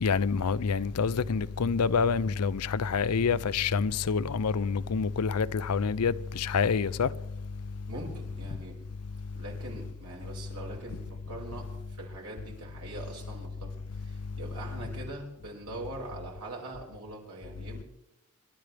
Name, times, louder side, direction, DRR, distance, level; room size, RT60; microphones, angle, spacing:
voice 1, 0.0-7.1, left 5 dB, 90° left, 0.5 m, -27 dB
voice 2, 7.9-8.8 9.3-13.7 14.0-17.8, right 2 dB, 85° right, 5.5 m, -42 dB
28.0 x 12.0 x 3.4 m
head